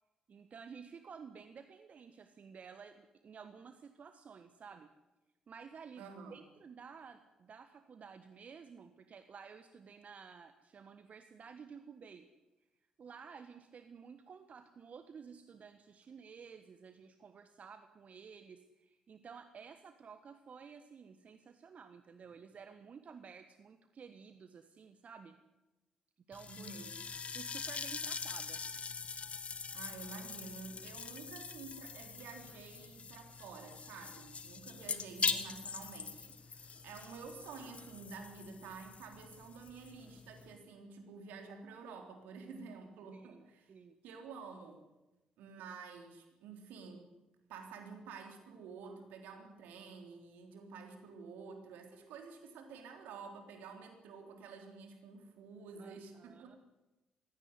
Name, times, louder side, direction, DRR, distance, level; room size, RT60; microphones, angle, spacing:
voice 1, 0.3-4.9 5.5-12.3 13.0-25.4 26.3-26.8 27.3-28.6 43.1-44.0 48.8-49.0 55.8-56.6, right 6 dB, 50° right, 10 dB, 1.4 m, -53 dB
voice 2, 6.0-6.4 26.5-26.9 29.7-43.7 44.0-44.8 45.4-47.1 47.5-56.6, right 5 dB, 70° right, 5 dB, 3.7 m, -50 dB
sound 1, 26.3-40.6, left 5 dB, 45° left, 1.8 m, -43 dB
21.5 x 17.0 x 9.8 m, 1.1 s
hypercardioid pair, 40°, 3 cm